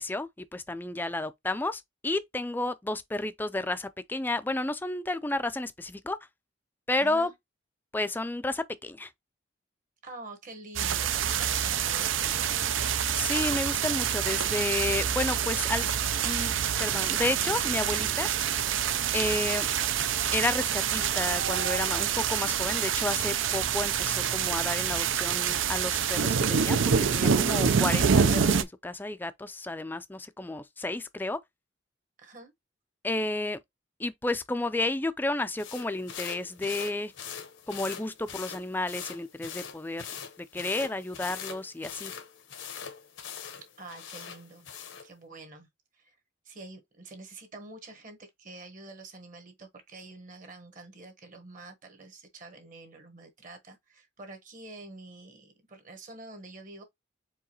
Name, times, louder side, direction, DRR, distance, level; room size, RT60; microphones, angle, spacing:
voice 1, 0.0-6.2 6.9-7.3 7.9-9.1 13.1-15.9 16.2-16.5 16.8-18.3 19.1-19.7 20.3-31.4 33.0-33.6 34.0-37.1 37.7-40.1 40.5-42.1, left 2 dB, 10° left, 0.3 m, -31 dB
voice 2, 7.0-7.3 10.0-12.6 32.2-32.5 43.8-44.7 45.0-45.7 45.9-46.2 46.4-56.8, right 2 dB, 40° right, 1.2 m, -47 dB
sound 1, 10.8-28.6, right 7 dB, 85° right, 0.6 m, -27 dB
sound 2, 35.6-45.1, left 7 dB, 80° left, 0.9 m, -42 dB
4.6 x 3.8 x 2.9 m
head